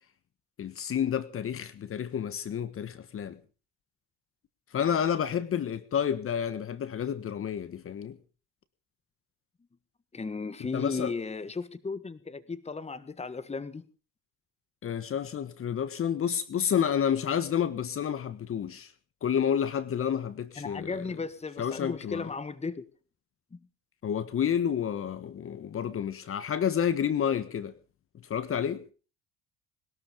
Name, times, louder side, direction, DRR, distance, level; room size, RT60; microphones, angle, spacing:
voice 1, 0.6-3.4 4.7-8.2 10.7-11.1 14.8-18.9 19.2-21.2 21.6-22.3 24.0-27.7 28.2-28.8, left 8 dB, 45° left, 1.5 m, -30 dB
voice 2, 10.1-13.9 20.6-22.9 23.5-23.6, left 4 dB, 20° left, 1.6 m, -35 dB
21.0 x 13.0 x 5.2 m
supercardioid pair, 70°, 30 cm